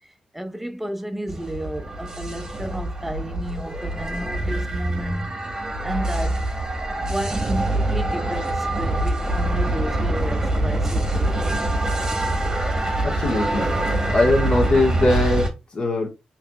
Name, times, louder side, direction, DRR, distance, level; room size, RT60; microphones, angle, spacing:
voice 1, 0.0-5.4 5.8-6.4 7.0-12.4, right 1 dB, 5° right, 0.6 m, -32 dB
sound 1, 1.3-15.5, right 1 dB, 25° right, 1.1 m, -24 dB
voice 2, 13.0-13.7 14.1-16.1, left 2 dB, 45° left, 1.4 m, -21 dB
4.8 x 3.1 x 2.3 m
cardioid pair, 85°, 2 cm